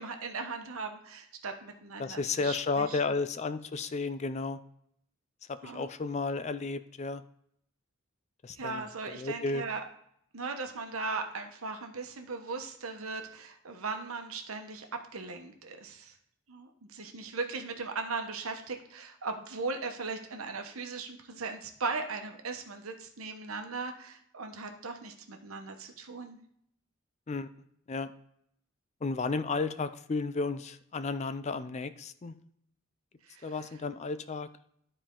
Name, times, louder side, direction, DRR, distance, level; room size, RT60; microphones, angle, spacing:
voice 1, 0.0-3.1 5.6-5.9 8.5-9.8 10.3-14.9 15.1-16.2 16.5-26.4 33.2-33.8, right 4 dB, 85° right, 5 dB, 1.1 m, -38 dB
voice 2, 2.0-4.6 5.6-7.2 8.4-8.8 9.2-9.6 27.3-27.5 27.9-28.1 29.0-32.3 33.4-34.5, left 3 dB, 30° left, 12 dB, 0.4 m, -33 dB
12.5 x 4.5 x 3.7 m, 0.71 s
head